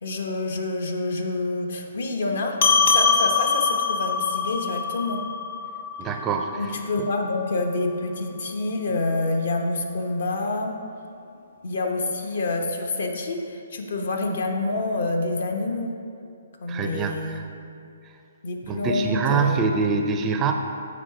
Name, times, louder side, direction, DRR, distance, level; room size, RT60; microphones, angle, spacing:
voice 1, 0.0-2.6 2.8-5.2 6.6-10.7 11.6-15.9 16.6-17.4 18.4-19.6, left 2 dB, 65° left, 3 dB, 0.9 m, -27 dB
sound 1, 2.6-7.4, left 5 dB, 50° left, 0.5 m, -24 dB
voice 2, 6.0-6.7 16.7-17.5 18.7-20.5, right 5 dB, 20° right, 4 dB, 0.4 m, -25 dB
7.3 x 4.7 x 4.7 m, 2.4 s
hypercardioid pair, 150°, 0 cm